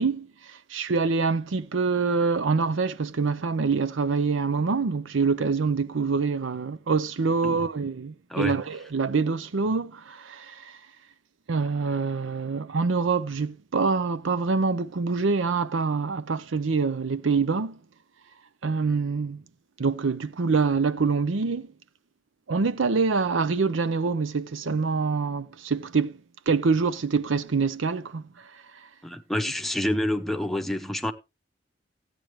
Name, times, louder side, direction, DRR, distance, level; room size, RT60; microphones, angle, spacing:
voice 1, 0.0-10.8 11.5-17.8 18.6-19.4 19.8-21.7 22.5-26.2 26.5-28.3, right 4 dB, 80° right, 0.6 m, -25 dB
voice 2, 29.0-31.1, left 1 dB, ahead, 0.7 m, -28 dB
15.5 x 9.0 x 3.1 m
head